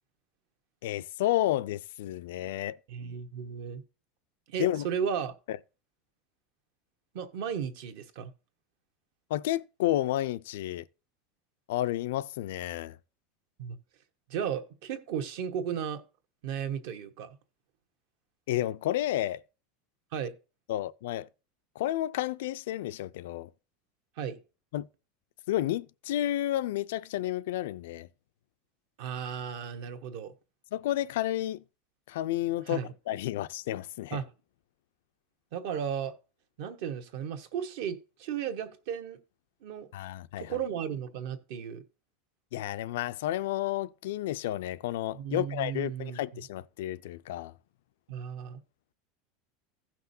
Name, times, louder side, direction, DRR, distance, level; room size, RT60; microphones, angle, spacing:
voice 1, 0.8-2.8 4.6-4.8 5.5-5.6 9.3-10.9 11.7-13.0 18.5-19.4 20.7-21.3 21.8-23.5 24.7-24.9 25.5-28.1 30.7-31.6 32.1-32.8 33.1-34.2 39.9-40.6 42.5-47.5, left 14 dB, 80° left, 0.4 m, -31 dB
voice 2, 2.9-3.8 4.5-5.3 7.1-8.3 13.6-13.8 14.3-16.0 16.4-17.3 20.1-20.3 24.2-24.4 29.0-30.3 32.6-32.9 34.1-34.3 35.5-36.1 36.6-39.2 39.6-39.9 40.4-41.8 45.1-46.4 48.1-48.6, right 8 dB, 55° right, 1.1 m, -35 dB
16.0 x 5.9 x 2.7 m
supercardioid pair, 180°, 0 cm